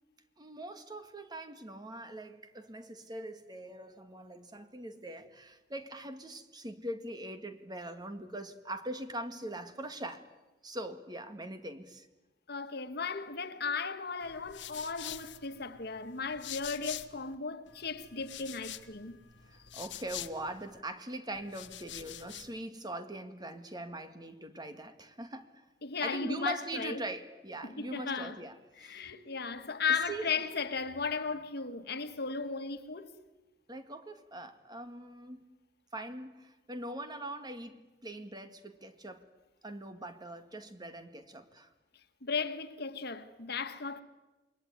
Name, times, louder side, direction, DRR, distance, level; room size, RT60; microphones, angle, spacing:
voice 1, 0.4-10.3 10.6-12.1 19.5-25.6 26.0-29.1 29.9-30.3 33.7-35.5 35.9-39.3 39.6-41.7, right 1 dB, 25° right, 1.9 m, -42 dB
voice 2, 12.5-19.2 25.8-27.0 27.6-28.4 28.8-33.1 42.2-44.0, left 5 dB, 60° left, 1.7 m, -36 dB
sound 1, 14.2-17.3 17.7-20.8 21.3-22.6, left 12 dB, 90° left, 1.3 m, -46 dB
28.0 x 22.5 x 9.5 m
head